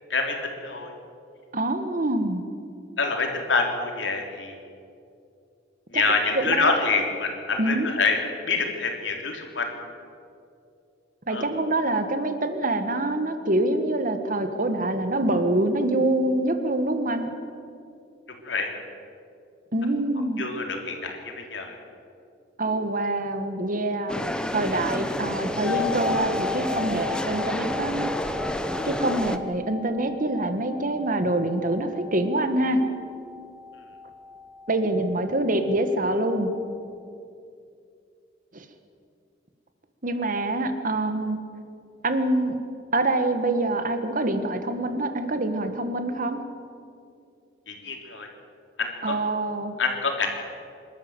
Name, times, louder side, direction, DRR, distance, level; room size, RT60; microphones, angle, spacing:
voice 1, 1.5-2.4 5.9-6.0 6.3-6.8 7.6-7.9 11.3-17.3 19.7-20.5 22.6-24.3 24.5-28.1 28.8-32.8 34.7-36.5 38.5-38.7 40.0-41.4 42.0-42.5 42.9-46.4 49.0-49.8, right 1 dB, 50° right, 8 dB, 1.7 m, -25 dB
voice 2, 3.0-4.6 5.9-8.2 8.4-9.7 11.3-11.4 18.4-18.7 20.4-21.7 47.7-48.3 48.8-49.1 49.8-50.3, left 4 dB, 85° left, 2 dB, 3.3 m, -26 dB
sound 1, 24.1-29.4, equal, 5° left, 0.8 m, -29 dB
sound 2, 25.6-35.4 35.6-35.7, left 5 dB, 15° right, 5.6 m, -35 dB
26.5 x 12.5 x 8.0 m, 2.5 s
head